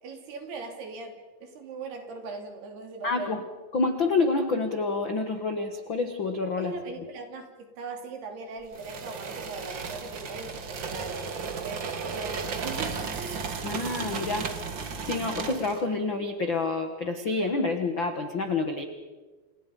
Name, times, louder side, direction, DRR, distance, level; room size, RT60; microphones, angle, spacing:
voice 1, 0.0-3.4 6.6-11.3 11.6-13.4, right 4 dB, 70° right, 4 dB, 4.9 m, -40 dB
voice 2, 3.0-3.4 3.7-6.7 13.6-14.5 15.0-18.8, left 3 dB, 60° left, 6 dB, 1.2 m, -28 dB
sound 1, 8.7-15.8, right 5 dB, 50° right, 1.4 m, -34 dB
29.0 x 28.5 x 5.4 m, 1.3 s
omnidirectional pair, 5.0 m